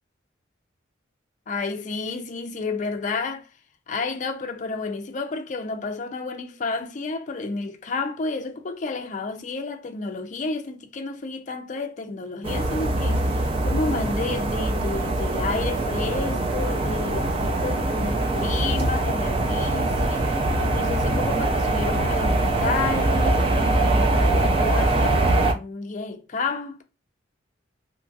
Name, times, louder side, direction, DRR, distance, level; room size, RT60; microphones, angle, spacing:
voice 1, 1.5-3.5 3.9-26.8, left 3 dB, 40° left, 0.4 m, -31 dB
sound 1, 12.4-25.5, right 2 dB, 30° right, 0.3 m, -23 dB
2.8 x 2.7 x 2.2 m
head